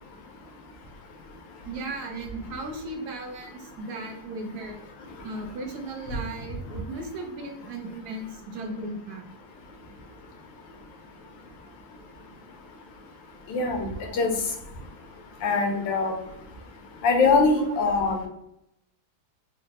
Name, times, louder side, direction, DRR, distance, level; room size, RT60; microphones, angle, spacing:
voice 1, 1.6-4.8 5.2-9.2 13.9-14.1 17.6-17.8, right 2 dB, 65° right, 1 dB, 1.2 m, -36 dB
voice 2, 13.5-13.9 14.1-14.3 15.4-16.1 17.0-18.2, left 4 dB, 80° left, 2 dB, 1.5 m, -22 dB
4.0 x 2.4 x 2.8 m, 0.80 s
omnidirectional pair, 2.0 m